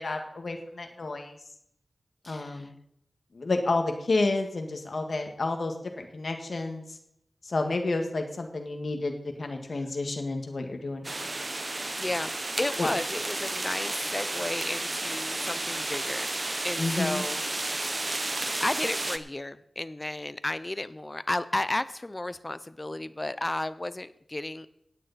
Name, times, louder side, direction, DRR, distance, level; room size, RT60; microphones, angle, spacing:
voice 1, 0.0-1.4 2.3-2.7 3.3-7.0 7.4-11.3 12.8-12.9 16.8-17.2, left 3 dB, 65° left, 4 dB, 1.8 m, -30 dB
voice 2, 2.2-2.7 12.0-16.3 16.6-17.4 18.6-24.7, left 2 dB, 25° left, 14 dB, 0.8 m, -33 dB
sound 1, 11.0-19.2, right 2 dB, 35° right, 0.9 m, -32 dB
16.5 x 9.2 x 4.2 m, 0.74 s
wide cardioid pair, 65°, 0 cm